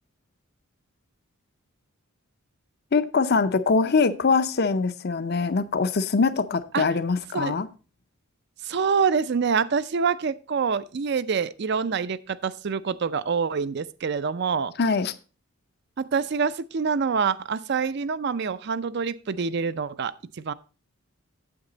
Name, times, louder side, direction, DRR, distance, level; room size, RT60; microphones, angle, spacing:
voice 1, 2.9-7.7 14.8-15.1, left 4 dB, 50° left, 13 dB, 0.6 m, -23 dB
voice 2, 8.6-14.7 16.0-20.5, right 5 dB, 50° right, 16 dB, 0.4 m, -26 dB
8.7 x 8.2 x 3.9 m, 0.34 s
head